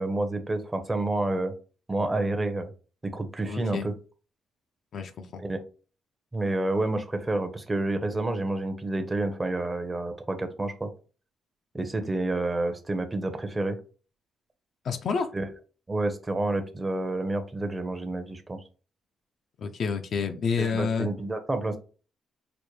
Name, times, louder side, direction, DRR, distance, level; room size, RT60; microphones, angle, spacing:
voice 1, 0.0-1.5 1.9-2.7 3.0-3.9 5.4-5.6 6.3-10.9 11.7-13.8 15.3-15.4 15.9-18.6 20.6-21.8, right 2 dB, 20° right, 6 dB, 0.7 m, -29 dB
voice 2, 3.5-3.9 4.9-5.3 14.8-15.3 19.6-21.1, left 5 dB, 60° left, 6 dB, 0.5 m, -29 dB
5.0 x 2.1 x 3.1 m, 0.37 s
cardioid pair, 90°, 0 cm